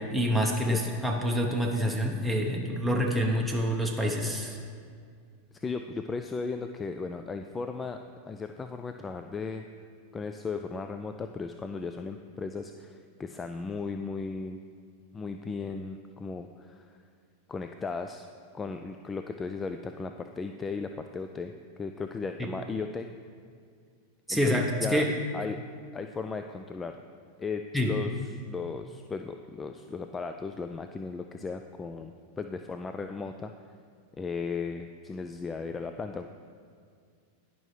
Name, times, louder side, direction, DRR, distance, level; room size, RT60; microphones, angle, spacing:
voice 1, 0.0-4.6 22.4-22.5 24.3-25.1 27.7-27.9, equal, ahead, -1 dB, 0.8 m, -27 dB
voice 2, 5.5-8.0 8.3-9.6 10.1-14.6 15.1-17.0 17.5-18.3 18.5-21.5 21.8-23.1 24.3-25.0 25.3-25.6 25.9-27.0 27.4-28.1 28.5-33.5 34.2-36.3, left 4 dB, 20° left, 6 dB, 0.3 m, -36 dB
11.0 x 5.4 x 3.2 m, 2.2 s
hypercardioid pair, 105°, 0 cm